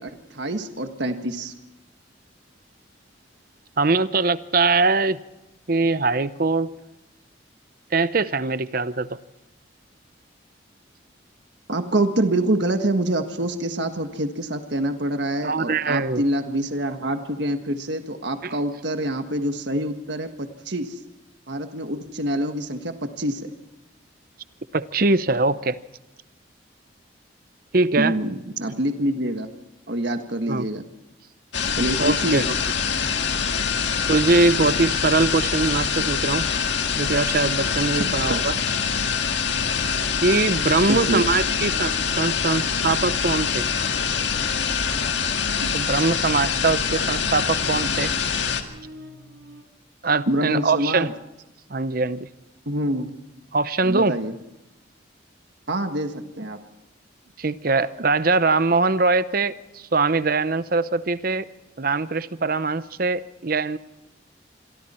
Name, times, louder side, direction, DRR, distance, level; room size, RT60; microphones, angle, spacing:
voice 1, 0.0-1.5 11.7-21.0 21.5-23.5 28.0-29.5 29.9-30.8 31.8-32.4 38.3-38.4 40.9-41.2 50.3-51.1 52.6-53.1 53.8-54.3 55.7-56.6, right 1 dB, 65° right, 7 dB, 1.6 m, -26 dB
voice 2, 3.8-5.2 5.7-6.7 7.9-9.2 15.4-16.2 18.4-18.5 24.7-25.8 27.7-28.1 30.5-30.7 32.0-32.4 34.1-36.5 37.0-38.6 40.2-43.7 45.6-48.1 50.0-51.1 51.7-52.3 53.5-54.2 57.4-61.4 61.8-63.8, right 3 dB, 50° right, 14 dB, 0.7 m, -22 dB
sound 1, 31.5-48.6, left 6 dB, 65° left, 1.9 m, -24 dB
sound 2, 37.8-49.6, right 1 dB, 90° right, 3.8 m, -46 dB
27.0 x 23.5 x 4.4 m, 0.92 s
head